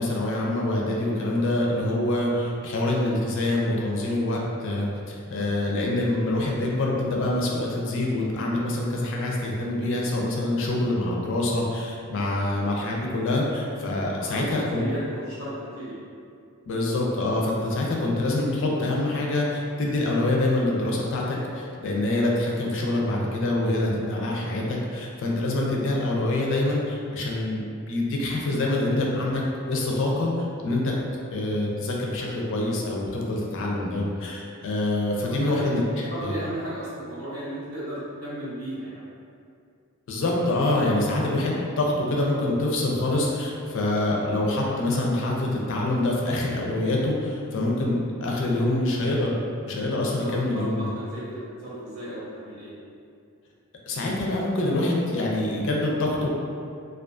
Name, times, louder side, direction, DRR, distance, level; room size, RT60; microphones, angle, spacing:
voice 1, 0.0-14.8 16.7-31.0 31.3-36.3 40.1-50.9 53.9-56.3, left 1 dB, 60° left, -2 dB, 0.4 m, -25 dB
voice 2, 14.1-14.4 14.7-16.0 35.2-35.8 36.1-39.1 47.4-47.6 50.0-52.7, right 1 dB, 80° right, -9 dB, 1.0 m, -35 dB
2.4 x 2.3 x 2.3 m, 2.4 s
head